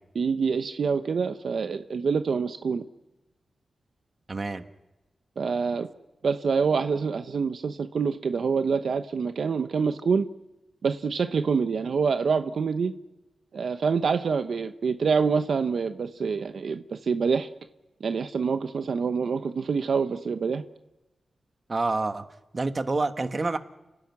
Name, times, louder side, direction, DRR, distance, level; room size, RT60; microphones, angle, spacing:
voice 1, 0.1-2.8 5.4-5.9 6.2-10.3 10.8-12.9 13.5-17.5 18.0-20.6, right 5 dB, 75° right, 9 dB, 0.9 m, -26 dB
voice 2, 4.3-4.6 21.7-22.3 22.5-23.6, right 3 dB, 40° right, 8 dB, 1.4 m, -27 dB
30.0 x 12.0 x 9.5 m, 1.0 s
wide cardioid pair, 85°, 0 cm